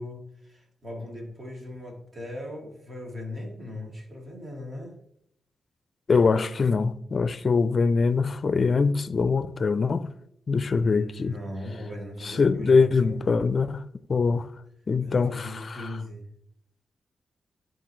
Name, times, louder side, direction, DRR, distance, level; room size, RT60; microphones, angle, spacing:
voice 1, 0.0-4.9 10.7-13.2 15.0-16.3, left 1 dB, 45° right, 2.2 m, -39 dB
voice 2, 6.1-10.1 10.5-11.3 12.2-13.8 14.1-14.5 14.9-15.9, left 4 dB, 50° left, 0.4 m, -23 dB
11.5 x 3.9 x 3.2 m
cardioid pair, 80°, 0 cm